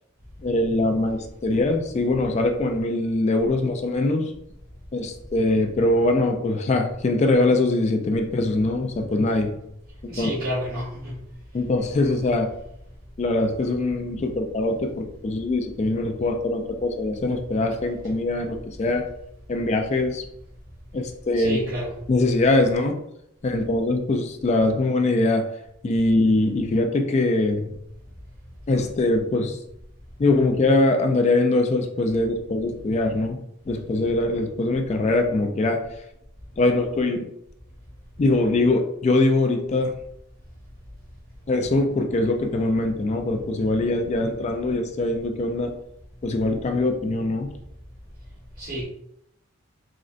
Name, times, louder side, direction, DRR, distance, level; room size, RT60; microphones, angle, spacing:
voice 1, 0.4-4.3 4.9-9.6 10.2-10.3 11.5-12.5 13.2-19.0 19.5-20.2 20.9-21.6 22.1-23.0 23.4-25.4 25.8-27.7 28.7-29.6 30.2-33.4 33.7-35.8 36.6-37.3 38.2-39.9 41.5-45.7 46.2-47.5, left 2 dB, 35° left, 4 dB, 0.3 m, -22 dB
voice 2, 10.1-11.2 21.3-21.9 48.6-48.8, equal, 45° right, -12 dB, 1.2 m, -30 dB
3.7 x 2.1 x 2.4 m, 0.77 s
head